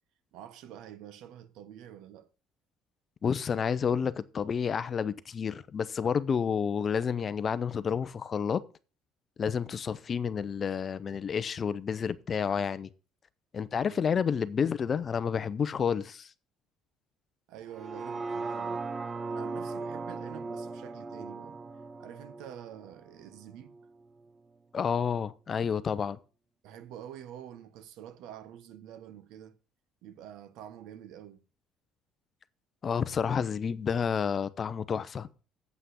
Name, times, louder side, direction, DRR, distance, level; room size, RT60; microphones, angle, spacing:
voice 1, 0.3-2.3 13.9-14.3 17.5-18.9 19.3-21.6 22.0-23.8 26.6-29.6 30.0-31.4, right 10 dB, 75° right, 1.0 m, -47 dB
voice 2, 3.2-8.6 9.4-12.9 13.5-16.3 24.7-26.2 32.8-35.3, left 7 dB, 35° left, 0.6 m, -30 dB
sound 1, 17.7-23.9 24.3-24.4, right 3 dB, 25° right, 0.7 m, -38 dB
8.3 x 5.7 x 7.7 m
cardioid pair, 125°, 0 cm